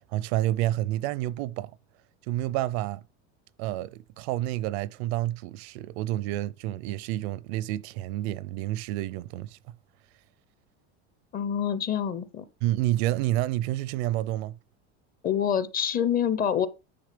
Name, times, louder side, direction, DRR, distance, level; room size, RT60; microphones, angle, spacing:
voice 1, 0.1-1.7 2.3-3.0 3.6-9.6 12.6-14.6, right 15 dB, 75° right, 0.6 m, -29 dB
voice 2, 11.3-12.5 15.2-16.7, left 8 dB, 25° left, 0.7 m, -26 dB
9.7 x 3.5 x 5.0 m
supercardioid pair, 140°, 32 cm